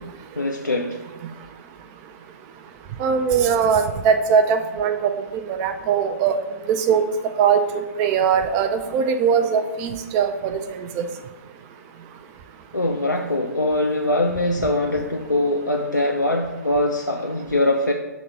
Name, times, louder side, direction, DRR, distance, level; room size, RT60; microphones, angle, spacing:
voice 1, 0.4-1.0 12.7-17.9, left 1 dB, 90° left, 1 dB, 0.5 m, -22 dB
voice 2, 3.0-5.0 5.3-6.3 6.7-7.0 7.4-7.6 8.0-10.6 11.0-11.1, right 7 dB, 25° right, 7 dB, 0.3 m, -20 dB
6.9 x 3.2 x 5.6 m, 1.2 s
figure-of-eight pair, 120°, 10 cm